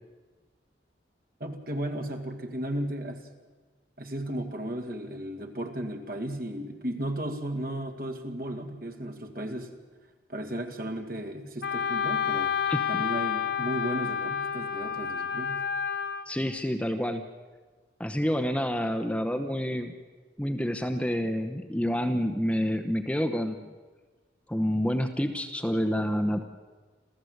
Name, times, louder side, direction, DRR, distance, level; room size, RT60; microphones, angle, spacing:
voice 1, 1.4-3.2 4.0-9.8 10.3-12.5 12.9-15.6, right 1 dB, 50° right, 4 dB, 2.3 m, -34 dB
Wind instrument woodwind instrument, 11.6-16.3, left 7 dB, 85° left, 1.9 m, -29 dB
voice 2, 12.7-13.0 16.3-17.2 18.0-19.9 20.4-23.7 24.5-26.4, equal, 5° left, 7 dB, 0.9 m, -28 dB
27.5 x 15.0 x 8.0 m, 1.3 s
head